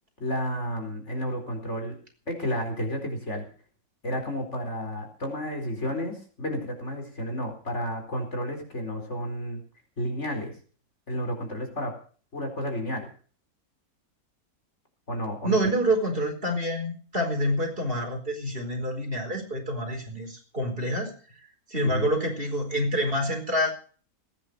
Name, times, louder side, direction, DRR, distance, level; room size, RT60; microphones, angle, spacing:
voice 1, 0.2-2.0 2.3-3.5 4.0-9.6 10.0-10.6 11.1-12.0 12.3-13.1 15.1-15.6 21.8-22.1, equal, 50° left, 4 dB, 4.5 m, -31 dB
voice 2, 15.4-21.1 21.7-23.7, equal, 35° right, 3 dB, 4.8 m, -27 dB
18.5 x 10.0 x 6.7 m, 0.41 s
omnidirectional pair, 1.6 m